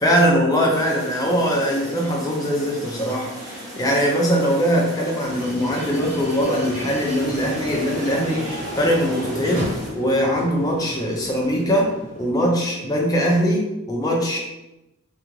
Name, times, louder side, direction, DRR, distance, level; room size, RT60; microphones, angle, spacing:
voice 1, 0.0-9.6 9.9-11.9 12.2-14.4, equal, 15° left, -1 dB, 0.5 m, -21 dB
sound 1, 0.7-9.9, equal, 15° right, 0.8 m, -37 dB
sound 2, 5.2-12.3, equal, 45° right, 0.8 m, -33 dB
2.7 x 2.4 x 2.9 m, 0.94 s
head